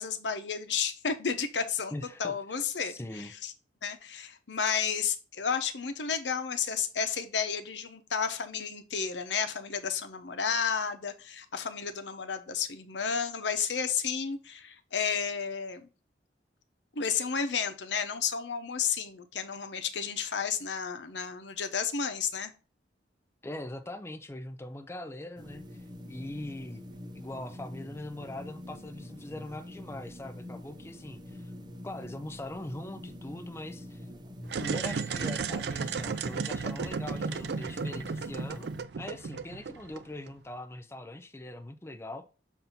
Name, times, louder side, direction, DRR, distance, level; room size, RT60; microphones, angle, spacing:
voice 1, 0.0-1.9 2.2-3.5 3.8-15.8 17.0-22.5, left 6 dB, 85° left, 0.8 m, -32 dB
voice 2, 1.9-3.3 23.4-25.8 26.1-26.8 27.1-31.5 31.8-34.1 34.6-38.7 39.0-42.2, left 1 dB, 15° left, 0.5 m, -41 dB
sound 1, 25.4-38.8, left 1 dB, 25° right, 0.8 m, -45 dB
sound 2, 34.4-40.3, right 5 dB, 65° right, 0.4 m, -34 dB
7.2 x 2.7 x 5.8 m
head